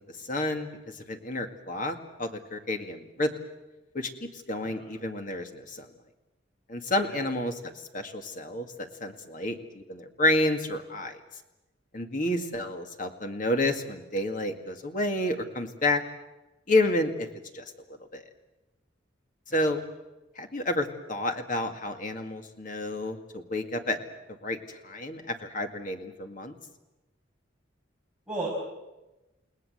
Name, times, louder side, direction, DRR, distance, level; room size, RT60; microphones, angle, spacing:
voice 1, 0.2-0.7 0.9-3.3 3.9-5.9 6.7-11.2 11.9-16.0 16.7-17.3 17.5-18.2 19.5-19.8 20.4-24.0 24.4-24.6 24.8-26.5, left 1 dB, 40° left, 5 dB, 2.1 m, -30 dB
voice 2, 4.5-4.8 7.0-7.2 19.5-19.6 28.3-28.5, right 3 dB, 5° right, -7 dB, 6.6 m, -35 dB
30.0 x 18.5 x 7.9 m, 1.0 s
head